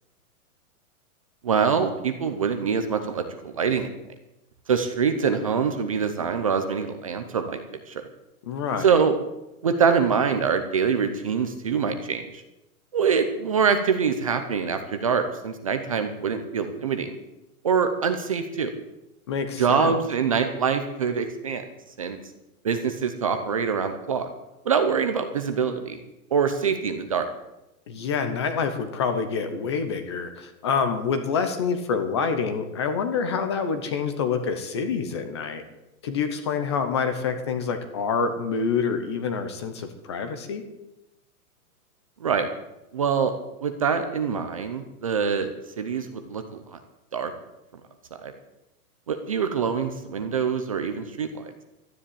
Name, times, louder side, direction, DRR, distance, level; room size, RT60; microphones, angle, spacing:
voice 1, 1.4-3.9 4.7-8.0 8.8-9.2 9.6-12.4 12.9-17.2 17.6-18.7 19.6-21.6 22.0-22.2 22.6-24.3 24.6-26.0 26.3-27.3 42.2-42.5 42.9-43.3 43.6-45.5 45.8-46.8 47.1-47.3 48.2-48.3 49.1-51.5, right 6 dB, 25° right, 8 dB, 0.7 m, -24 dB
voice 2, 8.4-8.9 19.3-20.0 27.9-35.6 36.0-40.6, left 5 dB, 20° left, 8 dB, 0.8 m, -27 dB
12.5 x 10.5 x 8.5 m, 0.94 s
hypercardioid pair, 180°, 44 cm